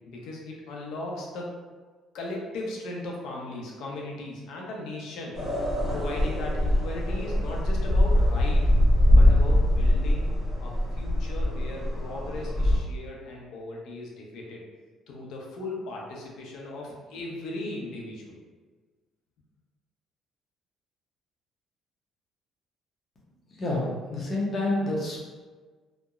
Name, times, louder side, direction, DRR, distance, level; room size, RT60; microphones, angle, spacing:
voice 1, 0.1-1.5 2.1-5.4 5.9-8.7 9.1-10.3 10.6-14.6 15.1-18.4, left 2 dB, 75° left, -2 dB, 0.6 m, -37 dB
sound 1, 5.3-12.8, left 1 dB, 15° left, 1.1 m, -22 dB
voice 2, 23.6-25.2, left 2 dB, 30° left, -4 dB, 0.7 m, -28 dB
2.9 x 2.1 x 2.3 m, 1.4 s
cardioid pair, 135°, 0 cm